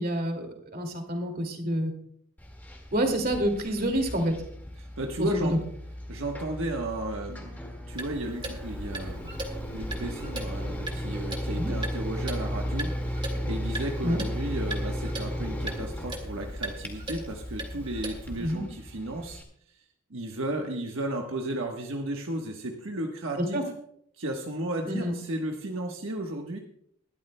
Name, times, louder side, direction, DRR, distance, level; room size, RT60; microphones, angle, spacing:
voice 1, 0.0-1.9 2.9-4.3 5.2-5.6 11.6-11.7 14.0-14.2 18.4-18.7 23.4-23.6 24.9-25.1, equal, 45° right, 4 dB, 2.3 m, -28 dB
sound 1, 2.4-19.4, equal, 10° left, 1.9 m, -35 dB
voice 2, 4.8-5.5 6.1-7.6 7.9-9.4 9.7-19.4 19.7-19.8 20.1-23.6 24.2-26.6, right 1 dB, 75° right, 2 dB, 1.2 m, -34 dB
Clock, 7.9-18.5, right 1 dB, 25° right, 1.6 m, -40 dB
20.5 x 12.5 x 2.2 m, 0.66 s
head